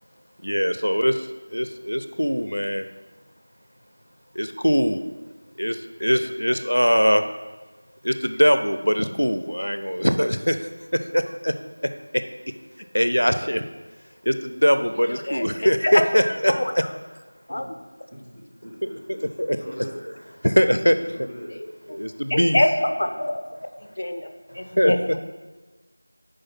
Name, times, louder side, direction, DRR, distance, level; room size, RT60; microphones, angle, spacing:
voice 1, 0.4-1.3 1.5-2.9 4.4-5.0 5.6-7.2 8.0-10.7 11.1-11.5 12.9-13.6 14.3-16.6 19.4-19.9 20.4-21.0 21.9-22.6 24.8-24.9, equal, 85° left, 9 dB, 0.5 m, -21 dB
voice 2, 15.1-16.0 16.5-16.7 17.5-17.6 22.3-23.3 24.0-24.3 24.5-25.2, left 1 dB, 35° left, 6 dB, 0.4 m, -24 dB
voice 3, 18.1-20.0 21.1-21.5 22.8-22.9, equal, ahead, -4 dB, 0.7 m, -41 dB
4.7 x 4.4 x 5.9 m, 1.2 s
figure-of-eight pair, 175°, 0 cm